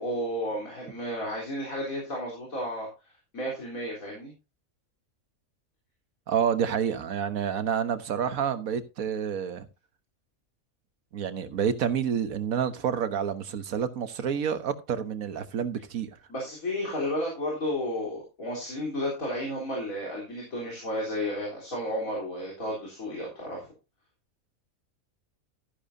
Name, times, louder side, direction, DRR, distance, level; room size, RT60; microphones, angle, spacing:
voice 1, 0.0-2.9 3.3-4.3 16.3-23.7, equal, 75° left, 4.2 m, -32 dB
voice 2, 6.3-9.7 11.1-16.1, right 8 dB, 80° right, 1.5 m, -28 dB
13.5 x 10.5 x 2.7 m
omnidirectional pair, 1.4 m